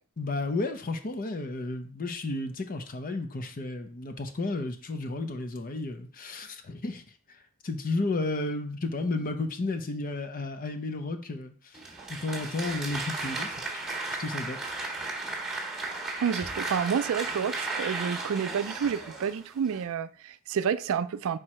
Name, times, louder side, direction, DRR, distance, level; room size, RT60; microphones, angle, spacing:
voice 1, 0.2-7.0 7.6-11.8 12.1-13.8 14.2-14.6, left 2 dB, 40° left, 0.6 m, -32 dB
Applause, 11.7-19.8, right 2 dB, 5° right, 1.6 m, -35 dB
voice 2, 16.2-21.4, right 7 dB, 65° right, 0.3 m, -29 dB
4.9 x 4.5 x 4.3 m
head